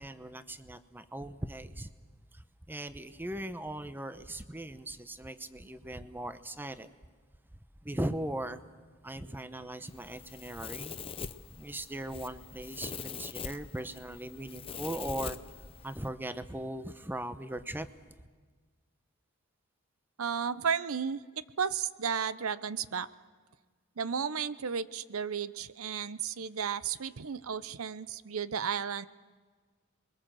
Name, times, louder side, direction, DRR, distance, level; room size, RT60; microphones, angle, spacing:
voice 1, 0.0-1.9 2.3-6.9 7.8-8.6 9.0-10.9 11.6-15.4 15.8-17.9, right 1 dB, 10° right, 0.8 m, -39 dB
Domestic sounds home sounds, 9.9-16.1, left 5 dB, 25° left, 0.7 m, -43 dB
voice 2, 20.2-23.1 24.0-29.1, right 7 dB, 90° right, 0.7 m, -33 dB
27.5 x 22.0 x 7.6 m
head